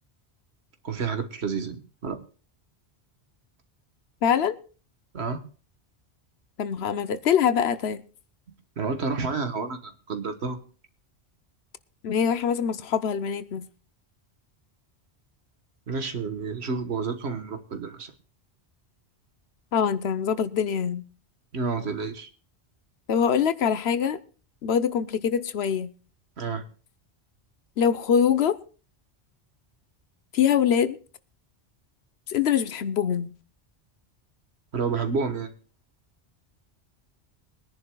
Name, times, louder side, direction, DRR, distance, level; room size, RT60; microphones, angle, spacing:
voice 1, 0.8-2.2 5.1-5.4 8.8-10.6 15.9-18.1 21.5-22.3 26.4-26.6 34.7-35.5, right 5 dB, 70° right, 8 dB, 1.6 m, -30 dB
voice 2, 4.2-4.5 6.6-8.0 12.0-13.6 19.7-21.0 23.1-24.2 24.6-25.9 27.8-28.6 30.3-31.0 32.3-33.3, left 8 dB, 70° left, 14 dB, 1.0 m, -24 dB
22.5 x 10.5 x 2.3 m, 0.37 s
omnidirectional pair, 1.1 m